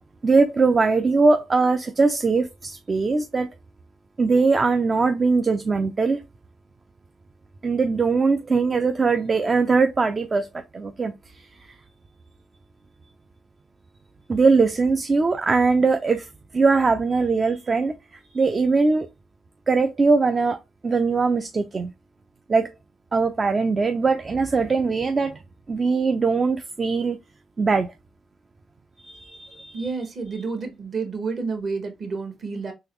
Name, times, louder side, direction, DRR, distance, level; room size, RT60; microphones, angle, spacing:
voice 1, 0.2-3.5 4.2-6.2 7.6-10.5 10.7-11.5 14.3-16.3 16.5-19.1 19.7-20.6 20.8-21.9 22.5-22.7 23.1-25.4 25.7-27.2 27.6-27.9 29.0-29.9, right 4 dB, 35° right, 0.5 m, -21 dB
voice 2, 29.7-32.7, right 4 dB, 50° right, 1.4 m, -30 dB
3.9 x 2.9 x 3.0 m
cardioid pair, 75°, 0 cm